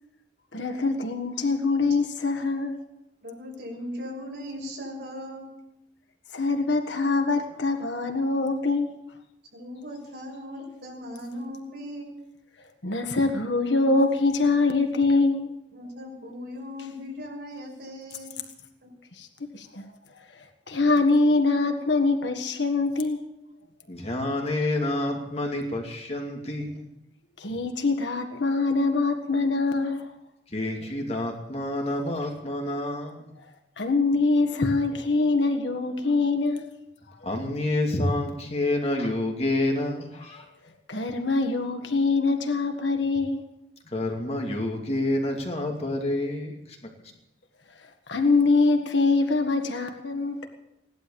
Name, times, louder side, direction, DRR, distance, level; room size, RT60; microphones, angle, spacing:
voice 1, 0.5-2.8 6.3-8.9 12.8-15.5 19.2-19.3 19.5-19.8 20.7-23.2 27.4-30.0 33.8-36.7 40.9-43.4 48.1-50.5, left 3 dB, 80° left, 5 dB, 1.7 m, -24 dB
voice 2, 3.2-5.5 9.5-12.1 15.7-18.3, left 1 dB, 65° right, -2 dB, 6.3 m, -38 dB
voice 3, 23.9-26.9 30.5-33.3 37.2-40.5 43.9-46.9, left 1 dB, 35° left, 1 dB, 2.4 m, -28 dB
17.0 x 11.5 x 7.1 m, 0.86 s
head